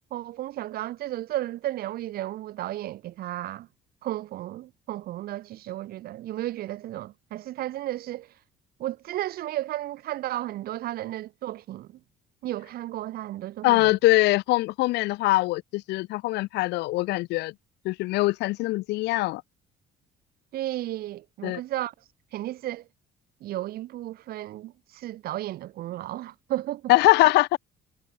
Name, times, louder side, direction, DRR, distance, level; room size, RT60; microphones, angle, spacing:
voice 1, 0.1-3.7 4.0-8.3 8.8-12.0 12.4-13.9 20.5-21.9 22.3-22.8 23.4-26.9 27.2-27.3, right 14 dB, 65° right, 0.7 m, -33 dB
voice 2, 13.6-17.5 17.8-19.4 21.4-21.6 26.9-27.6, left 20 dB, 85° left, 0.9 m, -22 dB
cardioid pair, 110°, 17 cm